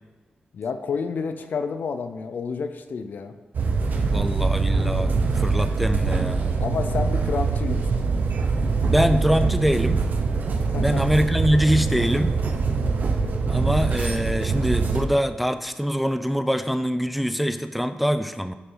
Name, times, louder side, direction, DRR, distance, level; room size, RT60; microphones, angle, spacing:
voice 1, 0.5-3.4 6.6-8.0 10.7-11.0, left 5 dB, 70° left, 9 dB, 0.6 m, -29 dB
sound 1, 3.5-15.1, right 4 dB, 65° right, 0.9 m, -23 dB
voice 2, 4.1-6.6 8.8-10.1 10.8-12.4 13.5-18.5, equal, ahead, 10 dB, 0.3 m, -24 dB
9.9 x 5.6 x 3.9 m, 1.4 s
wide cardioid pair, 135°, 3 cm